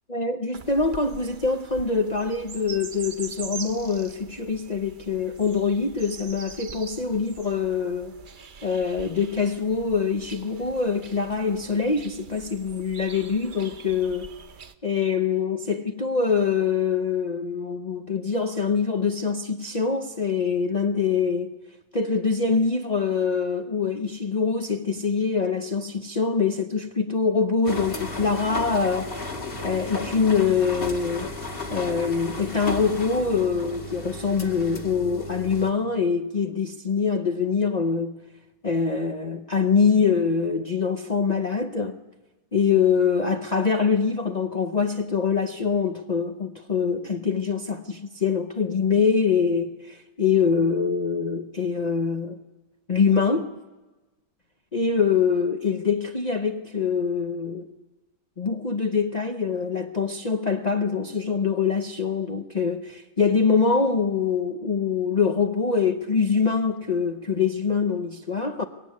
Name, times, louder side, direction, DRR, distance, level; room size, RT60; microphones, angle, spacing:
voice 1, 0.1-8.1 8.6-14.3 14.8-21.5 21.9-29.1 29.6-31.3 31.7-38.2 38.6-42.0 42.5-52.4 52.9-53.5 54.7-57.7 58.4-68.6, left 5 dB, 60° left, 0.4 m, -24 dB
sound 1, 0.5-14.7, right 5 dB, 45° right, 0.6 m, -43 dB
sound 2, 27.6-35.7, left 2 dB, 30° left, 2.2 m, -34 dB
23.5 x 20.0 x 9.5 m
omnidirectional pair, 2.1 m